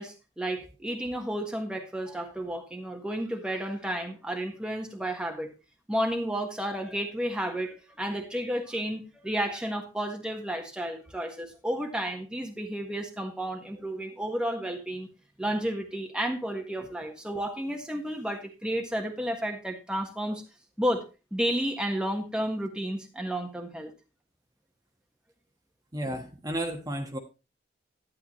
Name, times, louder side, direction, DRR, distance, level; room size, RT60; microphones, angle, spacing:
voice 1, 0.0-5.5 5.9-15.1 15.4-20.4 20.8-21.0 21.3-23.9, equal, 5° right, 3 dB, 1.4 m, -32 dB
voice 2, 25.9-27.2, right 1 dB, 20° right, 3 dB, 1.4 m, -33 dB
11.5 x 10.5 x 3.1 m, 0.29 s
head